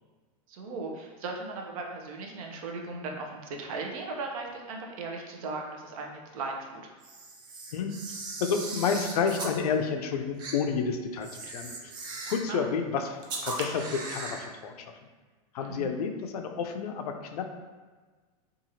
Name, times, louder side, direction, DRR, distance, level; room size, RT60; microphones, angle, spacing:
voice 1, 0.5-6.9 12.5-12.7 15.6-15.9, right 3 dB, 70° right, 1 dB, 0.6 m, -37 dB
Camera, 7.0-9.6 10.4-10.6 11.2-12.5 13.2-14.5, right 3 dB, 25° right, 0.3 m, -38 dB
voice 2, 8.4-11.7 12.3-14.8 15.5-17.4, left 6 dB, 90° left, 5 dB, 0.4 m, -30 dB
2.8 x 2.4 x 2.7 m, 1.4 s
supercardioid pair, 155°, 19 cm